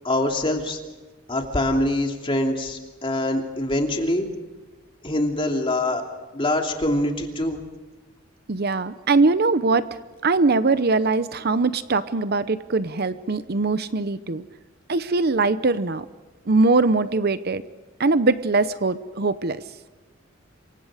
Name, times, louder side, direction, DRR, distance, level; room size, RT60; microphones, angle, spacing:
voice 1, 0.0-0.8 1.3-4.3 5.0-6.0 6.3-7.6, left 1 dB, 25° left, 2 dB, 2.9 m, -24 dB
voice 2, 8.5-9.9 10.2-14.4 14.9-16.1 16.5-17.6 18.0-19.6, right 3 dB, 50° right, 13 dB, 0.7 m, -21 dB
27.5 x 24.0 x 5.0 m, 1.2 s
head